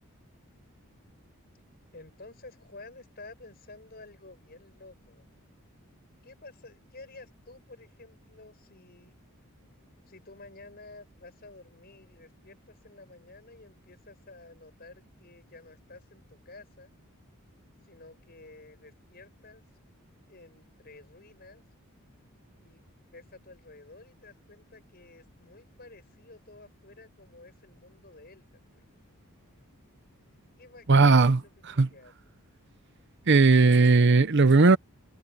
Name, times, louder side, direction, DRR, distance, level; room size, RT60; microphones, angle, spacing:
voice 1, 1.9-5.4 6.2-9.1 10.1-17.0 17.8-19.6 20.2-21.6 22.6-28.8 30.6-32.3, left 2 dB, 45° left, 6.4 m, -51 dB
voice 2, 30.9-31.4 31.8-31.9 33.3-34.8, right 3 dB, 50° right, 0.7 m, -18 dB
head